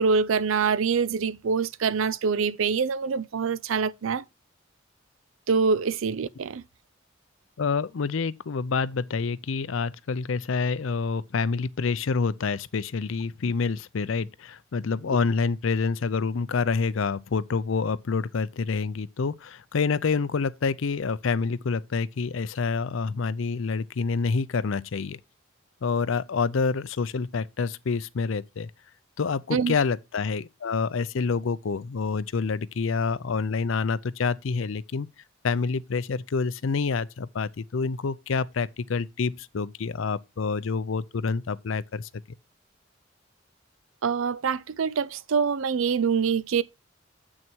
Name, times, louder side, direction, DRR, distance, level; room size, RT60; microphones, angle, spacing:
voice 1, 0.0-4.2 5.5-6.6 29.5-29.7 44.0-46.6, right 5 dB, 80° right, 0.5 m, -25 dB
voice 2, 7.6-25.2 25.8-28.7 29.2-35.1 35.4-42.1, left 5 dB, 75° left, 0.5 m, -27 dB
7.5 x 6.2 x 4.5 m
head